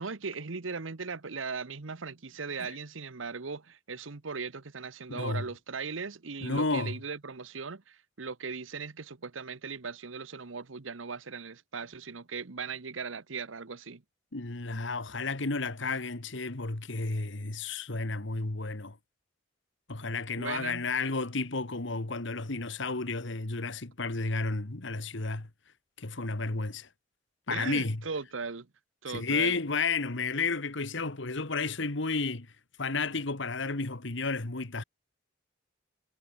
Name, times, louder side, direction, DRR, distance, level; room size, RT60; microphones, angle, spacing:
voice 1, 0.0-14.0 20.4-20.9 27.5-28.7 29.0-29.6, right 5 dB, 90° right, 1.1 m, -38 dB
voice 2, 5.1-5.5 6.4-7.0 14.3-19.0 19.9-25.5 26.0-26.9 27.5-28.0 29.1-32.5 32.8-34.8, left 3 dB, 70° left, 1.7 m, -32 dB
head